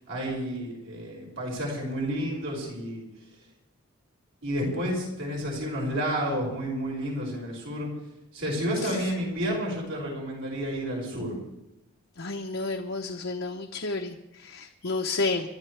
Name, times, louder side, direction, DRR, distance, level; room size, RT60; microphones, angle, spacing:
voice 1, 0.1-3.0 4.4-7.9 8.3-11.4, equal, 65° right, -3 dB, 6.0 m, -30 dB
voice 2, 12.2-15.5, left 3 dB, 65° left, 0 dB, 1.0 m, -31 dB
29.5 x 12.0 x 3.5 m, 0.89 s
head